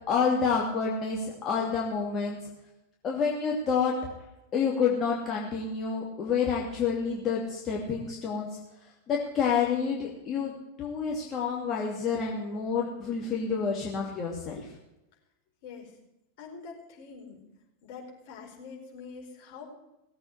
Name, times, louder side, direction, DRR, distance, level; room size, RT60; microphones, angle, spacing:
voice 1, 0.1-2.4 3.0-3.9 4.5-8.5 9.1-10.5 10.8-14.7, left 6 dB, 30° left, -2 dB, 2.7 m, -28 dB
voice 2, 15.6-16.0 16.4-17.4 17.8-19.6, left 5 dB, 50° left, 0 dB, 4.6 m, -45 dB
18.0 x 8.3 x 8.0 m, 0.92 s
figure-of-eight pair, 90°, 0 cm